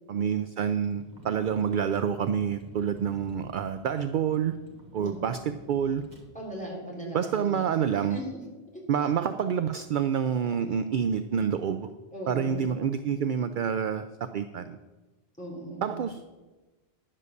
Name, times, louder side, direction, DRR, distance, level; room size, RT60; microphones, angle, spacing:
voice 1, 0.1-4.5 4.9-6.1 7.1-8.2 8.9-11.9 12.3-14.8 15.8-16.2, right 8 dB, 60° right, 10 dB, 0.6 m, -28 dB
Vehicle, 0.8-6.3, equal, 45° right, 1.7 m, -50 dB
voice 2, 6.3-7.7 8.1-8.4 8.7-8.8 12.1-12.6 13.0-13.1 15.4-16.0, equal, 5° left, -4 dB, 3.6 m, -38 dB
11.0 x 7.5 x 6.7 m, 1.2 s
omnidirectional pair, 1.0 m